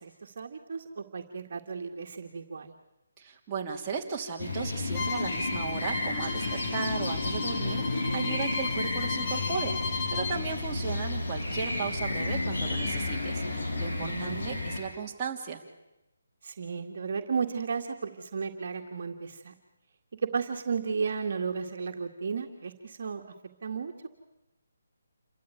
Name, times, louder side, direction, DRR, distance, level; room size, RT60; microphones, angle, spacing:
voice 1, 0.0-2.7 10.7-10.8 13.9-14.7 16.4-19.5 20.2-23.2 23.6-24.1, right 5 dB, 50° right, 3 dB, 2.0 m, -34 dB
voice 2, 3.2-15.6, right 5 dB, 15° right, -3 dB, 2.9 m, -36 dB
sound 1, 4.4-14.8, left 2 dB, 70° left, 7.1 m, -32 dB
Bowed string instrument, 4.9-10.4, left 3 dB, 20° left, 1.5 m, -36 dB
28.5 x 14.0 x 9.2 m, 0.95 s
hypercardioid pair, 165°, 0 cm